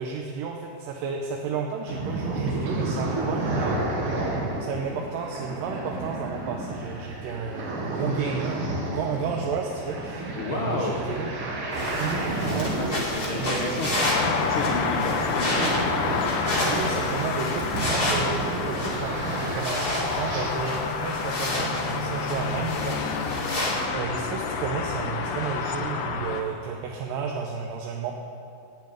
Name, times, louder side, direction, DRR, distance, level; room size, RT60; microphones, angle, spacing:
voice 1, 0.0-3.9 4.6-11.3 12.0-12.7 13.2-13.6 16.6-23.7 23.9-28.1, right 5 dB, 90° right, 1 dB, 2.5 m, -32 dB
sound 1, 1.9-20.5, right 2 dB, 50° right, 2.0 m, -31 dB
voice 2, 10.3-11.0 12.7-14.1 14.4-15.7, left 2 dB, 70° left, -2 dB, 1.2 m, -31 dB
sound 2, 11.7-23.9, left 1 dB, 20° left, 1.7 m, -31 dB
sound 3, 14.0-26.4, left 5 dB, 85° left, 2.6 m, -29 dB
10.5 x 7.8 x 9.1 m, 2.6 s
omnidirectional pair, 3.8 m